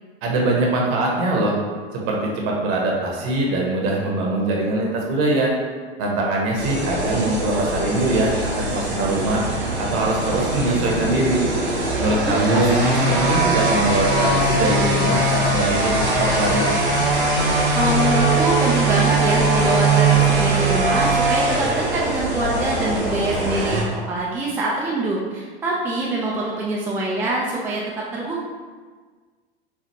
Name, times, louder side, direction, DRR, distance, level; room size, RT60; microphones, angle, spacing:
voice 1, 0.2-1.5 1.9-5.5 6.0-9.4 9.8-11.5 12.0-12.7 13.1-16.7, right 2 dB, 45° right, -2 dB, 0.9 m, -22 dB
sound 1, 6.6-23.8, right 2 dB, 85° right, 1.0 m, -21 dB
voice 2, 12.2-13.0 17.4-27.8 28.1-28.4, right 2 dB, 5° right, -5 dB, 0.3 m, -24 dB
4.5 x 2.3 x 2.8 m, 1.5 s
figure-of-eight pair, 85°, 31 cm